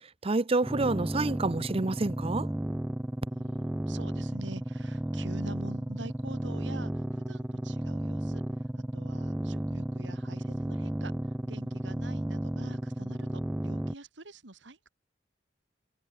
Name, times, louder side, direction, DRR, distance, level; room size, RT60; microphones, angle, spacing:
voice 1, 0.2-2.5, right 3 dB, 30° right, 0.8 m, -28 dB
sound 1, 0.6-13.9, right 1 dB, 5° right, 0.3 m, -33 dB
voice 2, 3.3-14.9, right 2 dB, 75° right, 2.5 m, -46 dB
head